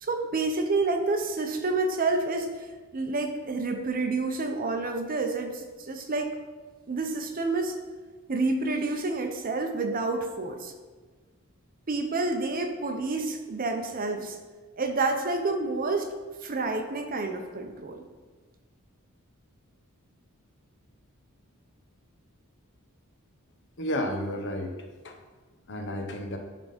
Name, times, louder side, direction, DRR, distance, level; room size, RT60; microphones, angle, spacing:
voice 1, 0.0-2.5 2.9-6.3 6.9-7.7 8.3-10.7 11.9-14.4 14.8-16.1 16.4-18.0, right 3 dB, 40° right, 5 dB, 0.8 m, -29 dB
voice 2, 23.8-24.8 25.0-25.2 25.7-26.4, left 1 dB, 55° left, 5 dB, 0.9 m, -31 dB
10.5 x 3.6 x 5.2 m, 1.3 s
head